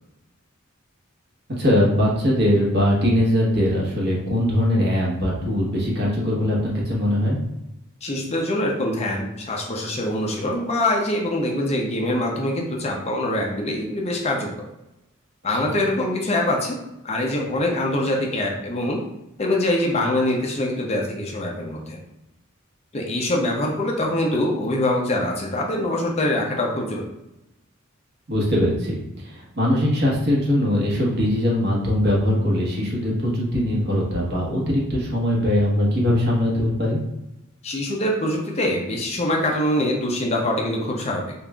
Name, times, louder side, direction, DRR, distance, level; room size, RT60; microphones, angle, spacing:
voice 1, 1.6-7.4 28.3-29.0 29.2-37.0, left 1 dB, 50° right, -3 dB, 1.1 m, -21 dB
voice 2, 8.0-14.5 15.4-16.8 17.0-19.0 19.4-22.0 22.9-27.1 37.6-41.3, left 1 dB, 30° left, -1 dB, 0.5 m, -24 dB
5.3 x 2.4 x 2.3 m, 0.91 s
head